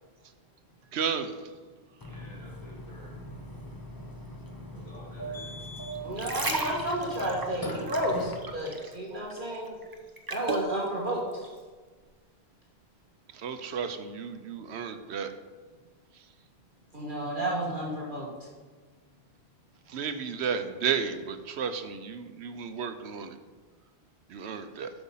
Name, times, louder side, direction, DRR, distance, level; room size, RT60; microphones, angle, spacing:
voice 1, 0.9-1.3 13.3-15.3 19.9-23.4 24.3-24.9, right 6 dB, 85° right, 9 dB, 1.0 m, -33 dB
voice 2, 2.0-3.7 4.7-5.6, equal, 40° left, -5 dB, 2.9 m, -52 dB
Burping eructation, 2.0-8.4, right 1 dB, 25° left, 0.6 m, -41 dB
sound 1, 5.9-9.0 9.3-10.7 11.3-11.5, right 3 dB, 25° right, 0.7 m, -34 dB
voice 3, 6.0-9.8 10.3-11.2 16.9-18.3, right 1 dB, 50° right, -3 dB, 1.6 m, -31 dB
7.8 x 6.1 x 5.6 m, 1.4 s
omnidirectional pair, 1.1 m